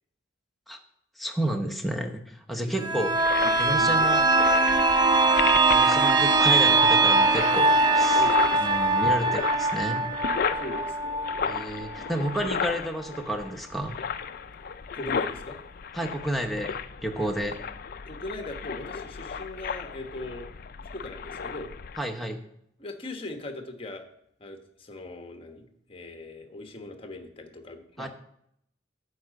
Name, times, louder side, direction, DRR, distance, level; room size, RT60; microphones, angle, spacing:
voice 1, 1.2-3.1 3.6-4.2 5.7-8.2 8.6-10.0 11.4-14.0 15.9-16.8 17.0-17.6 22.0-22.4 28.0-28.1, right 1 dB, ahead, 3 dB, 0.9 m, -31 dB
voice 2, 2.6-3.1 3.4-4.1 4.7-4.9 8.1-8.7 8.9-9.5 10.6-11.3 14.9-15.6 18.1-20.5 20.9-21.7 22.8-24.0 24.4-28.1, left 2 dB, 30° left, 5 dB, 1.1 m, -40 dB
sound 1, 2.8-12.4 12.7-12.8, right 3 dB, 20° right, 0.6 m, -22 dB
sound 2, 3.1-22.0, left 6 dB, 50° left, 0.4 m, -34 dB
9.9 x 4.8 x 7.6 m, 0.74 s
head